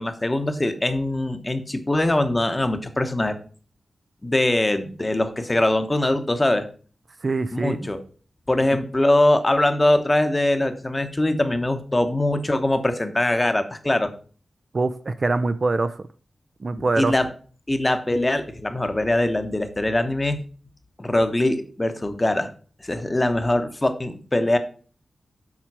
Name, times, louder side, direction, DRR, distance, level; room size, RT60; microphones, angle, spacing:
voice 1, 0.0-3.3 4.2-6.6 7.5-8.0 8.5-14.1 17.0-17.3 17.7-20.4 21.0-22.5 22.8-24.6, left 1 dB, 20° left, 8 dB, 0.9 m, -22 dB
voice 2, 7.2-7.9 14.7-16.1 16.6-17.1, right 3 dB, 40° right, 11 dB, 0.4 m, -24 dB
7.4 x 5.0 x 4.7 m, 0.41 s
wide cardioid pair, 105°, 0 cm